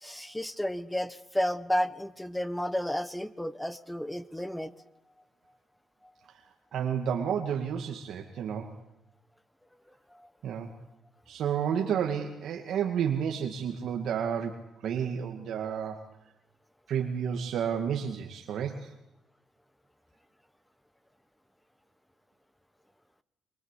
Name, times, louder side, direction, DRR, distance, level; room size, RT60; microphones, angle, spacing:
voice 1, 0.0-4.7, equal, 5° left, 14 dB, 1.4 m, -32 dB
voice 2, 6.7-8.7 10.4-10.7 11.3-16.0 16.9-18.9, right 8 dB, 70° right, 3 dB, 2.1 m, -31 dB
25.0 x 23.5 x 8.4 m, 0.87 s
cardioid pair, 90°, 0 cm